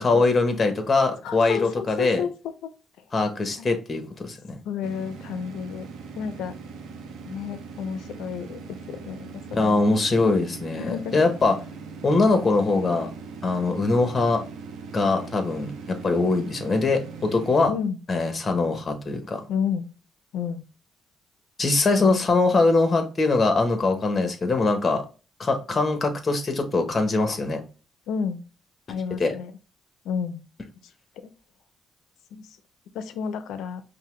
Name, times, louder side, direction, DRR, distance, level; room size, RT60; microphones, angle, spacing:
voice 1, 0.0-2.2 3.1-4.6 9.5-11.6 12.0-13.1 13.4-14.4 14.9-17.7 18.1-19.4 21.6-25.0 25.4-27.6 29.2-29.3, left 3 dB, 35° left, 1.1 m, -22 dB
voice 2, 1.2-2.3 2.6-2.7 3.6-3.7 4.6-5.9 6.2-6.6 7.2-9.8 10.8-11.2 17.7-18.0 19.5-19.9 20.3-20.6 22.0-22.2 28.1-28.4 28.9-29.5 30.0-30.4 31.2-31.3 32.3-32.5 32.9-33.8, left 7 dB, 85° left, 0.5 m, -31 dB
sound 1, 4.8-17.7, right 4 dB, 85° right, 0.7 m, -40 dB
5.5 x 2.1 x 3.2 m
cardioid pair, 90°, 0 cm